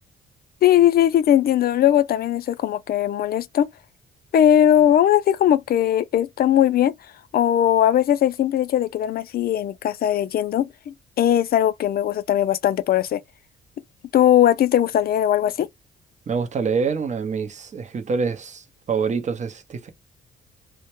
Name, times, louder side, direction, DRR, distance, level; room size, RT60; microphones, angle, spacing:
voice 1, 0.6-3.7 4.3-6.9 7.3-13.2 14.1-15.7, left 11 dB, 50° left, 0.4 m, -19 dB
voice 2, 16.3-19.9, right 5 dB, 35° right, 0.6 m, -26 dB
2.1 x 2.0 x 2.9 m
cardioid pair, 90°, 20 cm